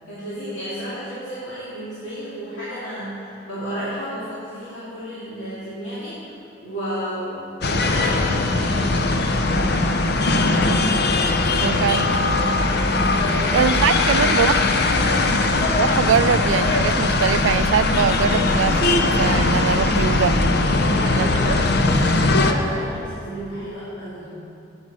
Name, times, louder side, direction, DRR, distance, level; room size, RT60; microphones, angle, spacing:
voice 1, 0.1-9.9 11.5-11.9 13.2-14.3 15.1-15.4 20.7-24.4, equal, 70° left, -11 dB, 2.4 m, -32 dB
sound 1, 7.6-22.5, left 2 dB, 55° left, 0.6 m, -20 dB
voice 2, 11.6-12.4 13.5-14.6 15.8-20.4 21.1-21.3, right 7 dB, 85° right, 14 dB, 0.3 m, -22 dB
11.0 x 9.0 x 4.8 m, 2.7 s
head